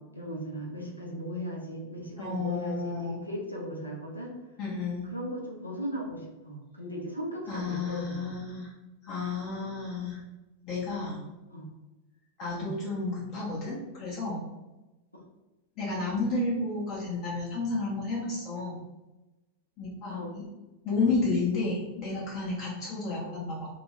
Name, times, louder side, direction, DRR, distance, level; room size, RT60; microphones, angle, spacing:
voice 1, 0.1-4.3 5.1-8.3 11.5-11.7 12.5-12.7 20.1-20.3 23.1-23.4, equal, 85° left, -2 dB, 0.5 m, -37 dB
voice 2, 2.2-3.2 4.6-5.1 7.5-8.7 9.0-10.2 10.6-11.2 12.4-14.5 15.8-18.8 19.8-20.4 20.8-23.7, left 3 dB, 40° left, -6 dB, 0.7 m, -31 dB
2.2 x 2.1 x 3.0 m, 1.1 s
figure-of-eight pair, 90°, 0 cm